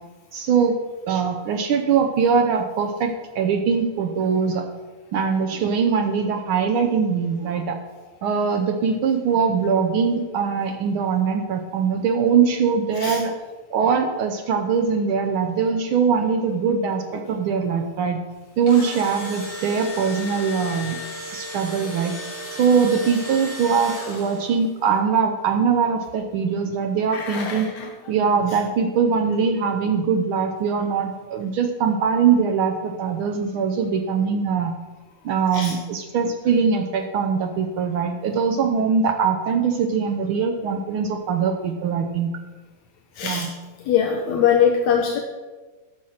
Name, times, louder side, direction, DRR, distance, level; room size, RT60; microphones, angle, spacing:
voice 1, 0.3-0.8 1.1-4.6 5.1-7.8 8.2-13.3 13.7-18.2 18.6-21.0 21.3-22.1 22.6-27.7 28.1-34.7 35.2-42.3 43.2-43.5, right 6 dB, 90° right, 4 dB, 1.1 m, -22 dB
Engine / Drill, 18.4-24.6, left 1 dB, 20° left, 3.1 m, -34 dB
voice 2, 27.1-27.9 35.5-35.8 43.2-43.5 43.9-45.2, left 8 dB, 75° left, 1 dB, 2.1 m, -22 dB
13.5 x 5.8 x 6.4 m, 1.3 s
omnidirectional pair, 3.4 m